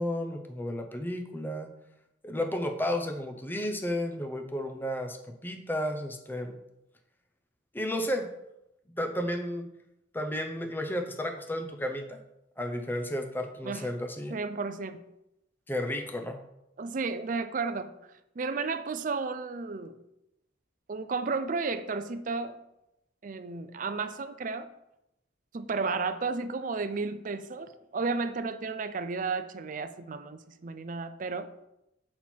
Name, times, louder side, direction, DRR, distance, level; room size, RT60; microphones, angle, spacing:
voice 1, 0.0-1.7 2.2-6.6 7.7-8.3 8.9-9.7 10.1-12.2 12.6-14.4 15.7-16.4, left 1 dB, 10° left, 5 dB, 0.7 m, -32 dB
voice 2, 14.3-15.0 16.8-17.9 18.4-20.0 20.9-22.6 23.2-24.7 25.5-31.5, right 4 dB, 45° right, 10 dB, 0.4 m, -33 dB
7.4 x 4.4 x 4.4 m, 0.86 s
head